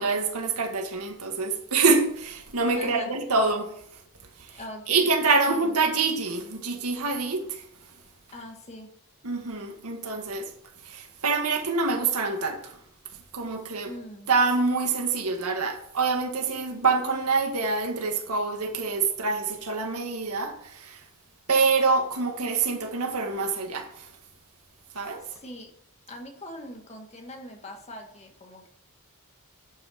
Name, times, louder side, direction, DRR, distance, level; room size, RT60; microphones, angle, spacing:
voice 1, 0.0-3.7 4.4-4.6 4.9-7.6 9.2-10.5 10.8-12.7 13.3-13.9 14.3-21.0 21.5-24.1 24.9-25.2, right 4 dB, 80° right, 1.8 m, -26 dB
voice 2, 2.7-3.2 4.5-5.1 5.5-5.7 8.3-8.9 13.8-14.3 25.2-25.7 26.1-28.7, left 1 dB, 30° left, 1.7 m, -41 dB
11.5 x 5.7 x 6.4 m
head